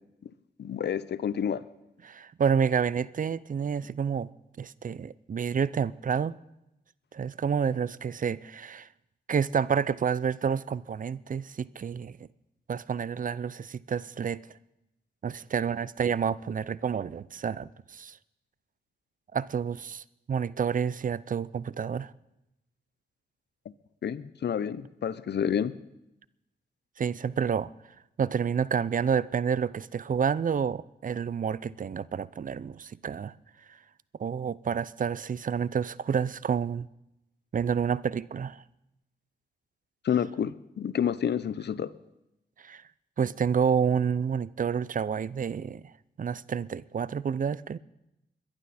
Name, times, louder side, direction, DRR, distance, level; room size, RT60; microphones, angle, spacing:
voice 1, 0.6-1.6 24.0-25.7 40.0-41.9, left 8 dB, 70° left, 0.7 m, -29 dB
voice 2, 2.0-4.3 4.6-6.4 7.1-8.9 9.3-12.2 12.7-14.4 15.2-18.2 19.3-22.1 27.0-27.7 28.2-33.3 33.7-33.8 34.2-36.9 37.5-38.6 42.6-42.8 43.2-45.8 46.2-47.8, right 7 dB, 50° right, 0.5 m, -29 dB
21.5 x 11.5 x 4.3 m
cardioid pair, 60°, 18 cm